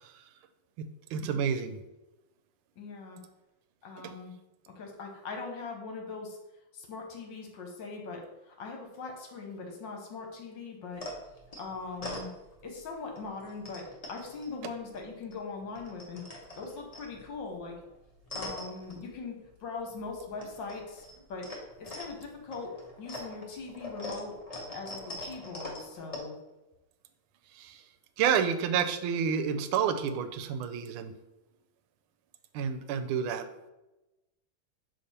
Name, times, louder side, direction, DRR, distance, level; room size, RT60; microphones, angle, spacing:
voice 1, 0.8-1.7 4.0-4.1 27.6-27.8 28.2-31.1 32.5-33.4, right 7 dB, 85° right, 9 dB, 1.4 m, -29 dB
voice 2, 2.8-3.2 3.8-4.3 4.7-6.4 6.7-11.1 11.6-12.3 12.6-16.2 16.6-17.8 18.3-21.5 21.8-24.4 24.7-26.4, left 4 dB, 65° left, 2 dB, 1.6 m, -41 dB
sound 1, 10.9-12.8 13.1-15.4 15.6-19.6 19.9-26.2, left 1 dB, 35° left, 0.6 m, -43 dB
6.6 x 3.5 x 4.2 m, 1.0 s
omnidirectional pair, 2.3 m